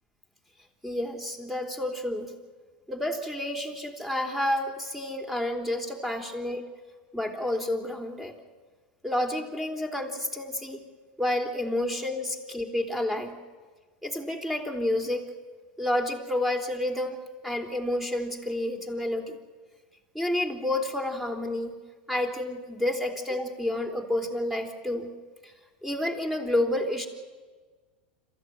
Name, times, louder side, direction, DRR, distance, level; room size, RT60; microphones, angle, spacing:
voice 1, 0.8-2.3 2.9-6.7 7.1-8.4 9.0-10.8 11.2-13.4 14.0-15.3 15.8-19.4 20.1-21.8 22.1-25.1 25.4-25.5 25.8-27.1, left 1 dB, 5° right, 4 dB, 3.7 m, -30 dB
26.5 x 14.5 x 9.6 m, 1.4 s
hypercardioid pair, 105°, 5 cm